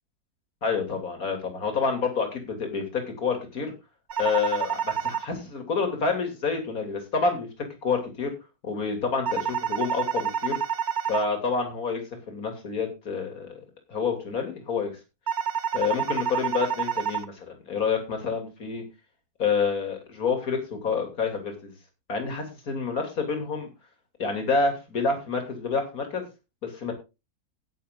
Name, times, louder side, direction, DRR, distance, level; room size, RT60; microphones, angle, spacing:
voice 1, 0.6-3.7 4.2-7.5 7.8-8.3 8.6-10.6 11.1-12.0 12.3-13.6 13.9-14.9 15.7-18.8 19.4-21.7 22.1-23.7 24.2-26.2 26.6-26.9, left 5 dB, 70° left, 4 dB, 3.5 m, -28 dB
sound 1, 4.1-5.2 9.2-11.2 15.3-17.2, right 8 dB, 50° right, 0.5 m, -28 dB
11.5 x 9.6 x 3.8 m, 0.27 s
omnidirectional pair, 1.6 m